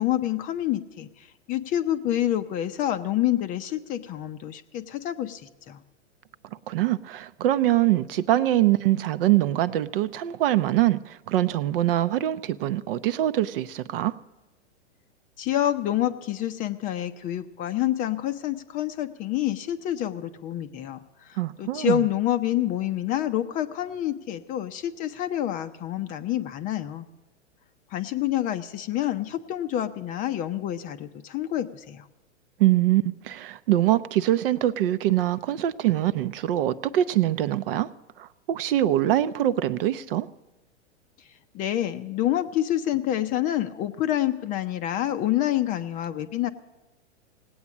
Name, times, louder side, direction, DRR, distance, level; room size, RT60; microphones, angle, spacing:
voice 1, 0.0-5.4 5.7-5.8 15.4-27.1 27.9-32.0 41.5-46.5, left 12 dB, 25° left, 11 dB, 0.5 m, -27 dB
voice 2, 6.7-14.1 21.4-22.0 32.6-37.9 38.2-40.3, right 13 dB, 50° right, 15 dB, 0.6 m, -23 dB
18.0 x 8.6 x 7.2 m, 1.1 s
hypercardioid pair, 130°, 35 cm